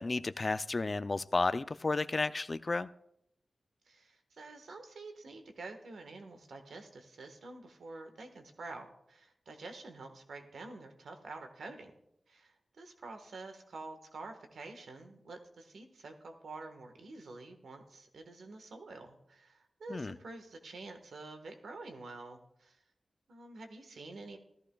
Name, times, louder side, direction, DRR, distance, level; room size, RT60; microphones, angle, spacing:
voice 1, 0.0-2.9 19.9-20.1, left 3 dB, 40° left, 14 dB, 0.4 m, -32 dB
voice 2, 3.9-11.9 12.3-22.8 23.3-24.4, right 3 dB, 90° right, 5 dB, 1.4 m, -48 dB
17.0 x 13.5 x 2.3 m, 0.77 s
wide cardioid pair, 75°, 0 cm